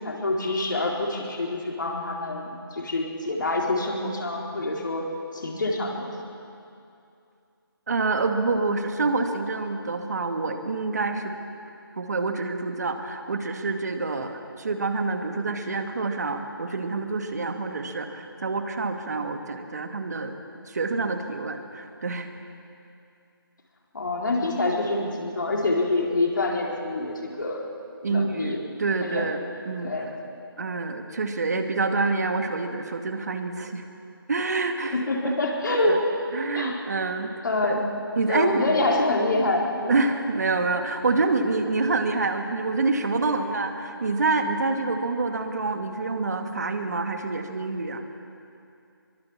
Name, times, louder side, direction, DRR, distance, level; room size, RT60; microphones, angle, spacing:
voice 1, 0.0-5.1 5.3-6.1 23.9-27.7 28.1-28.6 29.0-29.3 29.8-30.2 34.9-36.1 36.5-36.8 37.2-37.8 38.3-40.0, left 2 dB, 55° left, 0 dB, 4.3 m, -26 dB
voice 2, 7.9-11.3 12.0-20.3 20.7-22.3 28.0-29.9 30.6-33.8 34.3-35.0 35.2-35.3 35.9-36.0 36.3-37.3 37.6-37.8 38.2-38.6 39.9-48.0, right 3 dB, 45° right, 6 dB, 2.1 m, -27 dB
24.0 x 23.0 x 7.4 m, 2.6 s
figure-of-eight pair, 170°, 12 cm